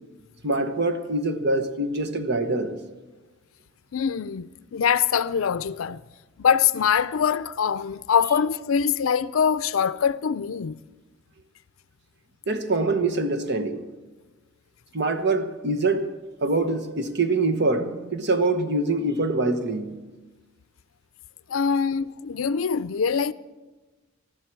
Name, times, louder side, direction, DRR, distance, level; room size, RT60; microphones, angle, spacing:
voice 1, 0.4-2.8 12.5-13.8 14.9-16.1 16.4-20.0, right 2 dB, 55° right, 1.2 m, -24 dB
voice 2, 3.9-6.0 6.4-10.8 21.5-23.3, left 7 dB, 80° left, 0.5 m, -23 dB
20.0 x 13.5 x 4.6 m
head